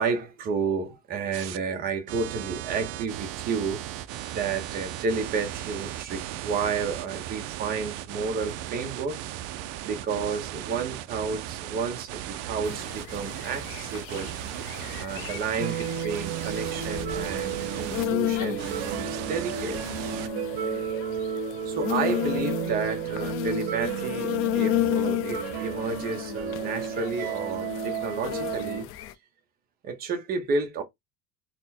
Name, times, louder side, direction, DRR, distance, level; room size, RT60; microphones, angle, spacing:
voice 1, 0.0-3.8 4.3-9.2 9.8-14.3 15.0-19.8 21.7-28.9 29.8-30.8, right 5 dB, 30° right, 0.8 m, -31 dB
sound 1, 1.3-1.6 2.1-18.1 18.6-20.3, right 13 dB, 50° right, 0.4 m, -37 dB
sound 2, 12.6-29.1, left 15 dB, 45° left, 0.4 m, -33 dB
sound 3, 15.6-28.8, right 7 dB, 85° right, 0.8 m, -33 dB
4.2 x 2.1 x 4.2 m
cardioid pair, 170°, 32 cm